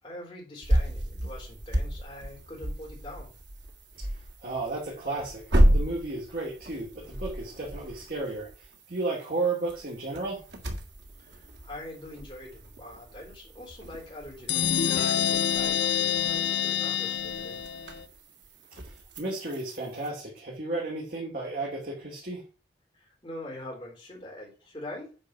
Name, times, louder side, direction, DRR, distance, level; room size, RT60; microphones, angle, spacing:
voice 1, 0.0-3.3 11.2-17.6 22.9-25.2, left 1 dB, 25° left, -3 dB, 4.4 m, -43 dB
sound 1, 0.6-20.1, equal, 75° right, 1.9 m, -32 dB
voice 2, 4.4-8.5 8.9-10.4 19.2-22.4, right 2 dB, 50° right, -4 dB, 2.8 m, -33 dB
sound 2, 14.5-18.0, left 8 dB, 75° left, 0.6 m, -27 dB
8.8 x 4.8 x 6.1 m, 0.34 s
head